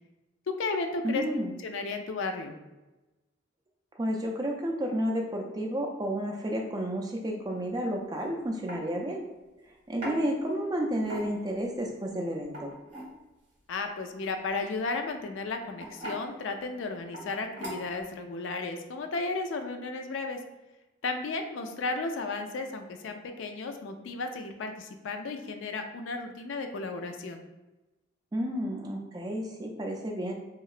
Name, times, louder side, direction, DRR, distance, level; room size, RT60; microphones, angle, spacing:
voice 1, 0.5-1.2 1.6-2.5 13.7-20.4 21.0-27.4, left 3 dB, 75° left, 5 dB, 0.3 m, -34 dB
voice 2, 1.0-1.5 4.0-9.2 9.9-12.7 28.3-30.3, equal, 20° right, 1 dB, 0.3 m, -31 dB
sound 1, 8.0-8.2 8.7-8.8 10.0-10.2 11.0-11.5 12.4-13.1 14.7-15.0 15.8-16.2 17.1-17.3 17.6-18.0, equal, 35° right, 1.3 m, -38 dB
3.0 x 2.8 x 2.4 m, 1.1 s
head